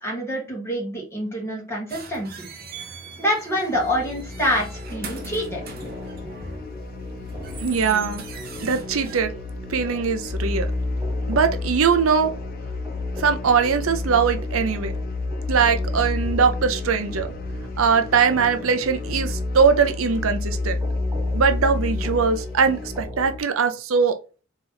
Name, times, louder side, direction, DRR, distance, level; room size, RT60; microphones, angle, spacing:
voice 1, 0.0-2.4 3.2-5.6, equal, 15° left, 1.9 m, -26 dB
sound 1, 1.9-9.2, right 5 dB, 45° right, 0.8 m, -41 dB
sound 2, 3.7-23.4, left 2 dB, 15° right, 0.8 m, -36 dB
sound 3, 4.9-23.0, left 2 dB, 45° left, 0.4 m, -31 dB
voice 2, 7.6-8.2 8.6-9.3 9.7-10.7 11.3-12.3 13.2-14.9 15.5-17.3 17.8-20.8 21.3-24.2, right 6 dB, 80° right, 0.6 m, -21 dB
3.9 x 3.0 x 3.9 m
head